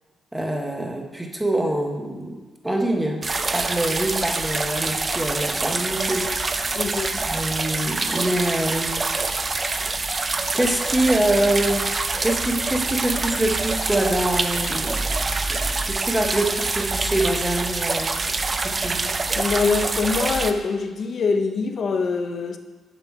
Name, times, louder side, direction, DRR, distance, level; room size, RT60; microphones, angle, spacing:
voice 1, 0.3-2.4 2.6-3.3 3.5-6.8 7.2-10.0 10.5-15.0 15.6-18.1 18.6-19.1, right 1 dB, 10° right, 3 dB, 0.9 m, -25 dB
sound 1, 3.2-20.5, right 3 dB, 25° right, 0.4 m, -26 dB
voice 2, 6.8-7.1 19.3-22.6, left 4 dB, 50° left, 7 dB, 0.6 m, -24 dB
7.0 x 5.8 x 4.6 m, 1.3 s
cardioid pair, 135°, 0 cm